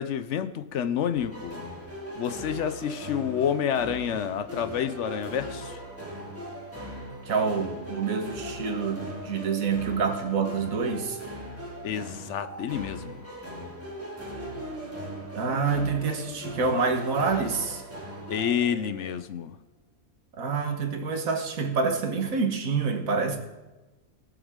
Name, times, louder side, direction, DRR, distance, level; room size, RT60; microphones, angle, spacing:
voice 1, 0.0-1.6 2.2-5.8 11.8-13.2 18.3-19.6, left 8 dB, 65° left, 11 dB, 0.9 m, -29 dB
sound 1, 1.1-19.3, right 1 dB, 10° right, 2.2 m, -39 dB
voice 2, 7.2-11.2 15.3-17.8 20.3-23.4, right 5 dB, 85° right, 5 dB, 1.7 m, -27 dB
19.0 x 7.1 x 3.7 m, 1.1 s
omnidirectional pair, 1.4 m